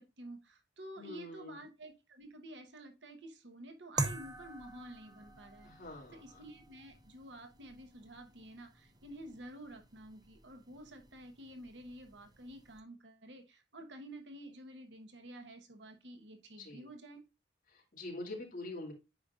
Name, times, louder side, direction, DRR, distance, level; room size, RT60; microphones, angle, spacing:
voice 1, 0.0-5.7 6.1-17.2, right 1 dB, 80° right, 5 dB, 1.1 m, -50 dB
voice 2, 1.0-1.6 5.6-6.2 16.6-16.9 17.7-18.9, left 2 dB, 45° left, -2 dB, 2.4 m, -44 dB
sound 1, 4.0-12.8, right 3 dB, 20° right, 0.7 m, -45 dB
8.6 x 5.3 x 2.4 m, 0.26 s
head